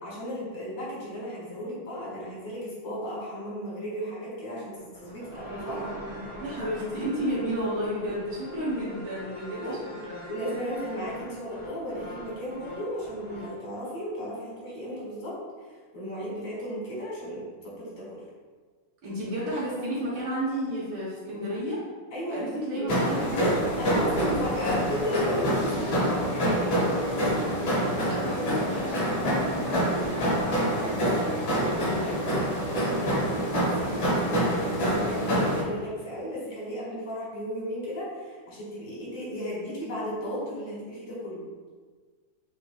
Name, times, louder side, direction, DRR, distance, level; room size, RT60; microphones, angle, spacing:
voice 1, 0.0-6.0 8.6-8.9 9.6-9.8 10.3-15.4 15.9-18.2 22.1-22.9 23.8-26.7 32.7-41.4, equal, 85° left, -7 dB, 2.7 m, -35 dB
sound 1, 4.8-13.6, equal, 20° right, 0.9 m, -42 dB
voice 2, 6.4-9.8 10.1-10.3 19.0-21.8 22.3-23.6 27.7-32.3, equal, 75° right, -8 dB, 1.9 m, -32 dB
sound 2, 22.9-35.6, equal, 65° left, 2.3 m, -26 dB
6.4 x 3.3 x 2.3 m, 1.5 s
omnidirectional pair, 2.4 m